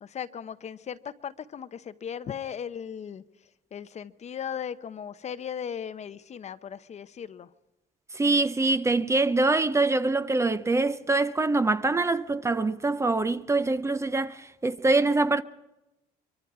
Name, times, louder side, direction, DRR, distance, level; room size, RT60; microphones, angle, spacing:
voice 1, 0.0-3.2 3.7-7.5, left 8 dB, 40° left, 0.8 m, -37 dB
voice 2, 8.2-14.4 14.6-15.4, right 3 dB, 15° right, 0.7 m, -24 dB
24.0 x 23.5 x 4.8 m
cardioid pair, 110°, 17 cm